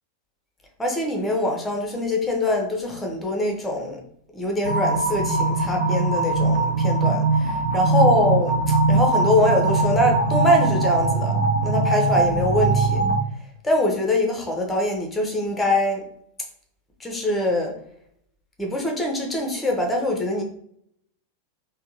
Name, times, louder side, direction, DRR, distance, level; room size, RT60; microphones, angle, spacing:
voice 1, 0.8-4.0 4.3-13.0 13.6-16.0 17.0-17.7 18.6-20.4, left 1 dB, 10° left, 1 dB, 0.8 m, -23 dB
sound 1, 4.6-13.2, right 2 dB, 75° right, 1.2 m, -21 dB
3.5 x 2.2 x 2.9 m, 0.66 s
figure-of-eight pair, 90°, 0 cm